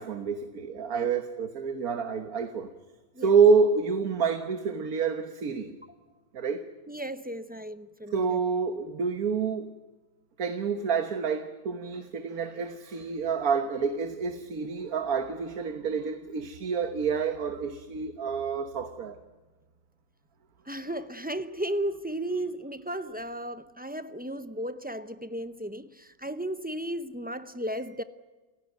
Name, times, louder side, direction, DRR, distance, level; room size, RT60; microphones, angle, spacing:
voice 1, 0.0-2.7 3.2-5.8 6.3-6.7 8.1-9.7 10.4-19.2, right 5 dB, 80° right, 1.7 m, -28 dB
voice 2, 6.9-8.4 20.7-28.0, right 1 dB, 10° right, 0.4 m, -35 dB
28.5 x 16.0 x 9.3 m
omnidirectional pair, 1.5 m